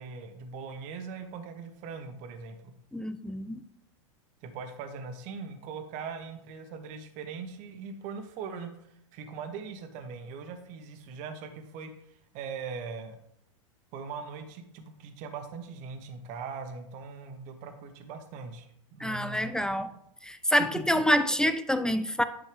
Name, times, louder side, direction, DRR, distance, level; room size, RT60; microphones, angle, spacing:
voice 1, 0.0-2.7 4.4-13.2 13.9-19.6 20.7-20.8, right 5 dB, 50° right, 7 dB, 1.3 m, -41 dB
voice 2, 2.9-3.6 19.0-19.9 20.2-22.2, equal, 5° left, 11 dB, 0.4 m, -27 dB
10.5 x 5.3 x 3.5 m, 0.72 s
hypercardioid pair, 115°, 17 cm